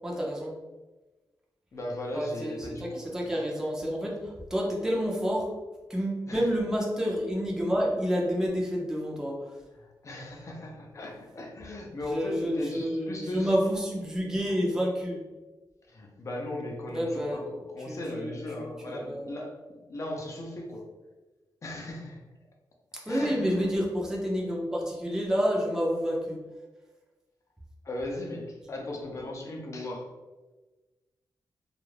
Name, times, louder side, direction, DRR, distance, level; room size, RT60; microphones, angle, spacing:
voice 1, 0.0-0.5 2.1-5.5 5.9-9.4 12.0-15.2 16.9-17.4 17.9-18.4 18.9-19.2 23.1-26.4, equal, 5° right, -3 dB, 0.5 m, -29 dB
voice 2, 1.7-3.4 6.3-6.5 9.7-13.6 15.9-20.9 21.6-22.2 23.1-23.5 27.8-30.1, left 1 dB, 45° left, 0 dB, 0.5 m, -37 dB
2.4 x 2.0 x 3.1 m, 1.2 s
wide cardioid pair, 115°, 8 cm